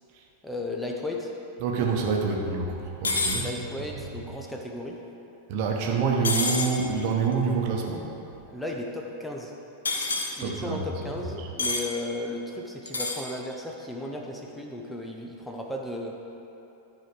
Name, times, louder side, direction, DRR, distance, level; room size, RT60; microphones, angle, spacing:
voice 1, 0.4-1.3 3.4-5.0 6.1-6.4 8.5-9.5 10.3-16.2, left 1 dB, 5° left, 0 dB, 0.8 m, -35 dB
voice 2, 1.6-3.5 4.0-4.1 5.5-8.1 10.4-10.8 11.4-11.5, right 5 dB, 45° right, 0 dB, 1.1 m, -27 dB
sound 1, 3.0-3.4 6.2-6.7 9.9-10.3 11.6-11.9 12.9-13.2, left 3 dB, 70° left, 0.9 m, -27 dB
12.5 x 4.9 x 4.6 m, 2.9 s
figure-of-eight pair, 90°, 0 cm